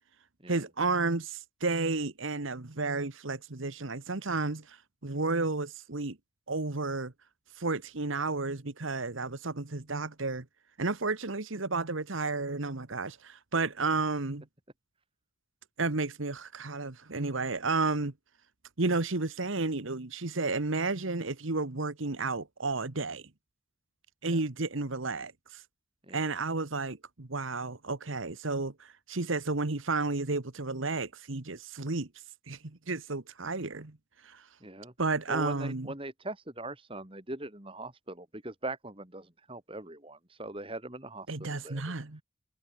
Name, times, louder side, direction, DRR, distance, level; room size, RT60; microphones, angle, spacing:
voice 1, 0.5-6.2 6.5-7.1 7.6-10.4 10.8-14.5 15.8-18.1 18.8-23.3 24.2-25.6 26.1-32.1 32.5-34.0 34.2-34.5 35.0-35.9 41.3-42.2, right 3 dB, 70° right, 1.5 m, -32 dB
voice 2, 34.6-34.9 35.3-41.8, right 2 dB, 25° right, 3.0 m, -41 dB
head